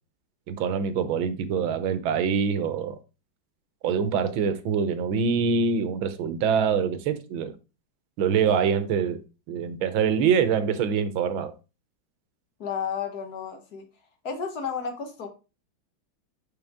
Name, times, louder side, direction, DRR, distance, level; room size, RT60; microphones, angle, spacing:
voice 1, 0.5-3.0 3.8-7.5 8.2-9.2 9.5-11.5, right 6 dB, 85° right, 1.6 m, -24 dB
voice 2, 12.6-13.8 14.2-15.3, left 6 dB, 55° left, 1.4 m, -32 dB
5.7 x 5.3 x 3.5 m
omnidirectional pair, 2.2 m